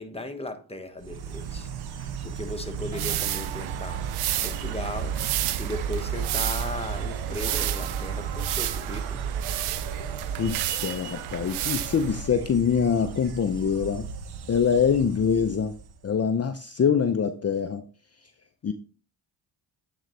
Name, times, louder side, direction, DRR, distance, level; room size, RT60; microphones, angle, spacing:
voice 1, 0.0-1.7 2.2-4.0 4.4-5.1 5.6-9.2, left 2 dB, 10° left, 1.2 m, -36 dB
Insect, 1.0-16.1, right 7 dB, 50° right, 0.8 m, -34 dB
sound 1, 2.9-12.3, right 13 dB, 85° right, 0.6 m, -32 dB
voice 2, 10.4-14.1 14.5-15.7 16.0-17.8 18.6-18.7, left 7 dB, 30° left, 0.6 m, -24 dB
8.7 x 3.9 x 3.2 m
supercardioid pair, 55°, 49 cm